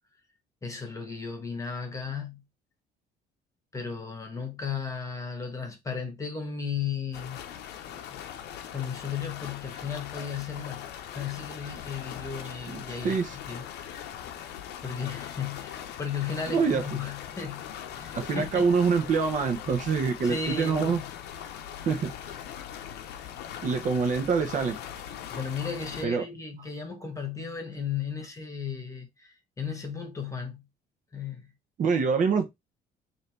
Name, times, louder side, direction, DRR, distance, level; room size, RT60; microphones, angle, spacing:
voice 1, 0.6-2.4 3.7-7.4 7.9-8.3 8.7-14.2 14.8-18.6 20.2-21.1 23.2-23.3 25.3-30.6 31.1-31.5, left 6 dB, 20° left, 1.3 m, -35 dB
sound 1, 7.1-26.0, left 10 dB, 80° left, 0.6 m, -41 dB
voice 2, 12.7-13.4 16.5-16.8 18.1-21.0 21.9-22.3 23.6-24.8 26.0-26.2 31.8-32.5, right 5 dB, 50° right, 0.8 m, -25 dB
3.3 x 2.7 x 4.2 m
cardioid pair, 110°, 17 cm